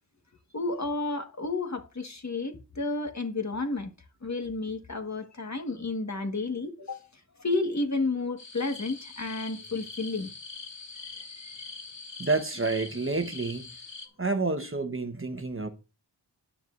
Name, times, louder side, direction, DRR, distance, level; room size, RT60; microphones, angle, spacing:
voice 1, 0.5-3.9 4.2-7.1 7.4-10.3 11.2-11.7, left 3 dB, 40° left, 1.6 m, -31 dB
sound 1, 8.4-14.1, left 4 dB, 90° left, 2.0 m, -43 dB
voice 2, 12.2-13.7 14.2-15.7, right 3 dB, 30° right, 1.1 m, -29 dB
10.0 x 9.3 x 2.6 m
wide cardioid pair, 90°, 43 cm